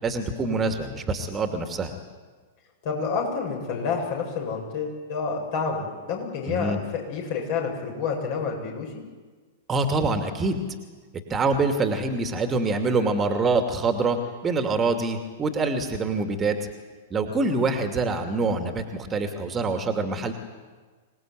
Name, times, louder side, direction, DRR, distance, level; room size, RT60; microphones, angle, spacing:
voice 1, 0.0-1.9 6.5-6.8 9.7-10.6 11.3-16.6 17.1-20.3, right 3 dB, 20° right, 6 dB, 2.6 m, -25 dB
voice 2, 2.8-9.0 17.3-17.5, left 5 dB, 50° left, 1 dB, 7.8 m, -29 dB
26.0 x 19.0 x 9.4 m, 1.4 s
figure-of-eight pair, 100°, 0 cm